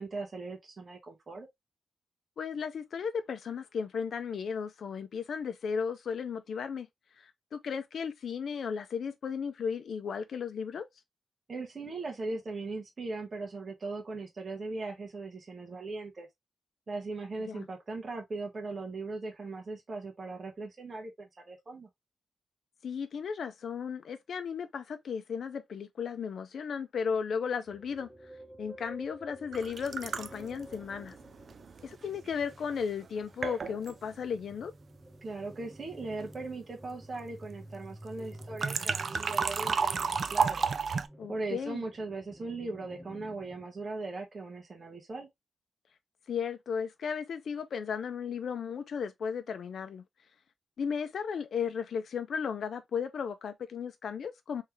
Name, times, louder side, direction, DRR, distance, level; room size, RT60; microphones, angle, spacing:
voice 1, 0.0-1.5 11.5-16.3 16.9-21.9 35.2-40.7 41.3-45.3, right 3 dB, 40° right, 1.3 m, -39 dB
voice 2, 2.4-6.9 7.2-10.9 17.5-17.7 22.8-28.1 28.6-31.2 31.8-34.7 41.2-41.8 46.3-50.0 50.8-54.6, left 6 dB, 75° left, 0.5 m, -35 dB
sound 1, 27.7-43.7, equal, 5° left, 1.0 m, -51 dB
sound 2, 29.5-32.3 33.0-33.1 33.4-33.9 38.4-41.1, right 5 dB, 55° right, 0.4 m, -32 dB
3.6 x 3.2 x 3.1 m
wide cardioid pair, 110°, 0 cm